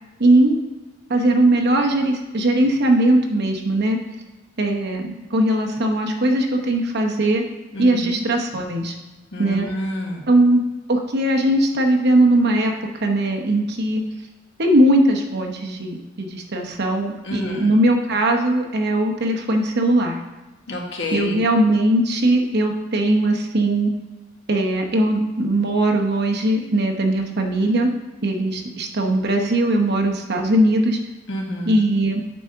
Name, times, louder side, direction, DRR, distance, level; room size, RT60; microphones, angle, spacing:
voice 1, 0.2-0.6 1.1-4.0 4.6-7.4 7.8-8.9 9.4-9.7 10.3-10.6 10.9-12.7 13.0-14.0 14.6-20.2 21.1-23.9 24.5-27.9 28.2-31.0 31.7-32.2, right 1 dB, 55° right, 2 dB, 0.9 m, -19 dB
voice 2, 7.7-8.2 9.3-10.2 17.2-17.7 20.7-21.4 31.3-31.7, left 1 dB, 65° left, 0 dB, 1.3 m, -29 dB
8.2 x 3.6 x 5.7 m, 1.1 s
head